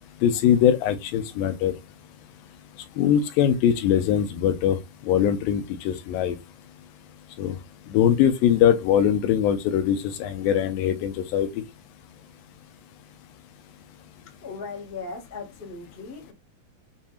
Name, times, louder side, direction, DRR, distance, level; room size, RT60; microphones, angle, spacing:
voice 1, 0.2-1.7 3.0-4.8 5.1-6.4 7.4-7.6 7.9-11.6, left 9 dB, 85° left, 2.3 m, -22 dB
voice 2, 14.2-16.3, left 4 dB, 30° left, 1.1 m, -38 dB
6.9 x 2.7 x 2.4 m
omnidirectional pair, 4.0 m